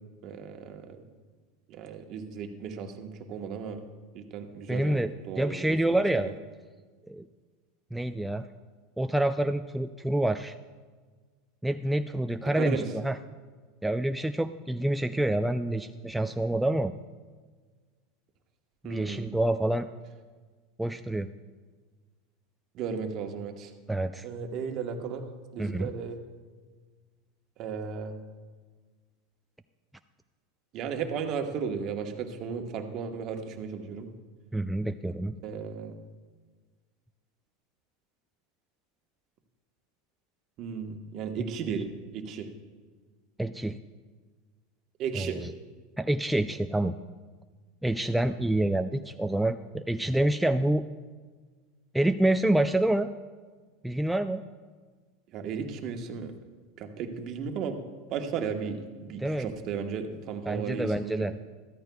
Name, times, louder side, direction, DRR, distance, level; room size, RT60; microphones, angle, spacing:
voice 1, 0.2-1.0 1.7-3.8 4.1-5.8 6.1-6.3 12.5-12.9 18.8-19.3 22.7-23.7 24.2-25.3 25.5-26.2 27.6-28.2 30.7-34.1 35.4-35.9 40.6-41.9 42.1-42.5 45.0-45.4 55.3-56.3 56.8-57.8 58.1-61.3, right 6 dB, 50° right, 5 dB, 1.2 m, -35 dB
voice 2, 4.7-6.3 7.1-7.3 7.9-8.5 9.0-10.6 11.6-13.2 13.8-16.9 18.8-19.9 20.8-21.3 23.9-24.3 25.6-25.9 34.5-35.3 43.4-43.8 45.1-45.5 46.0-47.0 47.8-50.8 51.9-53.1 53.8-54.4 59.2-59.5 60.5-61.4, right 1 dB, 5° right, 8 dB, 0.3 m, -27 dB
13.5 x 13.5 x 2.3 m, 1.4 s
hypercardioid pair, 100°, 0 cm